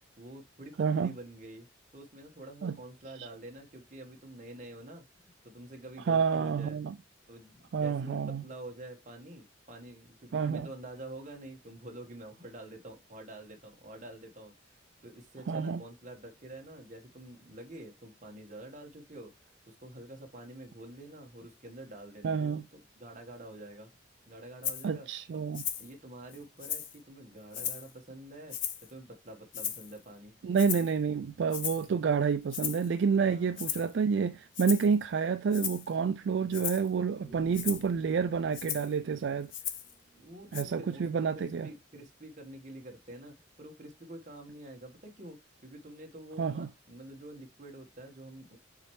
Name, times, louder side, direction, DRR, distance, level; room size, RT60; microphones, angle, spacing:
voice 1, 0.2-1.7 1.9-6.8 7.3-19.3 19.7-23.9 24.3-25.1 25.3-25.4 25.8-28.6 28.9-30.3 31.8-32.0 33.2-33.6 36.4-36.6 40.2-48.6, right 1 dB, 40° right, 1.4 m, -47 dB
voice 2, 0.8-1.1 2.6-2.7 3.2-3.3 6.1-6.9 7.7-8.4 10.3-10.7 15.5-15.8 22.2-22.6 24.8-25.6 30.4-39.5 40.5-41.7 46.4-46.7, right 6 dB, 65° right, 0.3 m, -29 dB
Rattle (instrument), 24.6-24.9 25.5-25.9 26.3-27.0 27.5-27.9 28.5-28.9 29.5-30.0 30.6-30.9 31.5-31.9 32.5-32.9 33.6-33.9 34.5-34.9 35.5-35.9 36.5-36.9 37.5-37.9 38.5-38.9 39.5-39.9 40.5-40.6, left 9 dB, 70° left, 0.9 m, -36 dB
sound 1, 29.2-41.8, right 2 dB, 15° left, 3.1 m, -59 dB
7.0 x 4.4 x 3.1 m
head